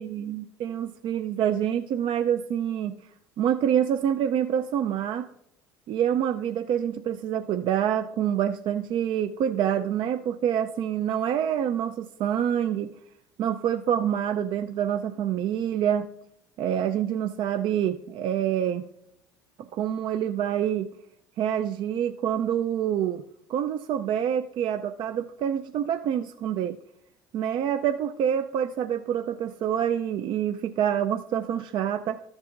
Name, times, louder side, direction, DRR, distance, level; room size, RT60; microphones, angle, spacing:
voice 1, 0.0-3.0 3.4-5.3 5.9-12.9 13.4-16.1 16.6-18.8 19.7-20.9 21.4-23.2 23.5-26.8 27.3-32.2, right 9 dB, 50° right, 8 dB, 0.4 m, -26 dB
13.0 x 7.2 x 2.5 m, 0.76 s
hypercardioid pair, 70°, 10 cm